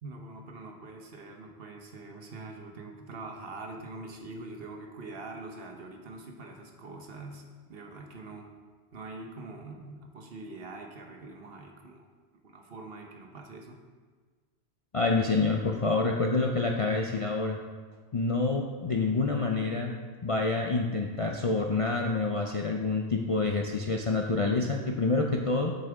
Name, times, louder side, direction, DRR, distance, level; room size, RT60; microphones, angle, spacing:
voice 1, 0.0-8.5 8.9-12.1 12.4-13.8, right 2 dB, 60° right, 2 dB, 1.1 m, -44 dB
voice 2, 14.9-17.6 18.1-19.9 20.2-25.7, left 3 dB, 45° left, 1 dB, 0.4 m, -27 dB
8.4 x 6.7 x 3.5 m, 1.5 s
omnidirectional pair, 1.2 m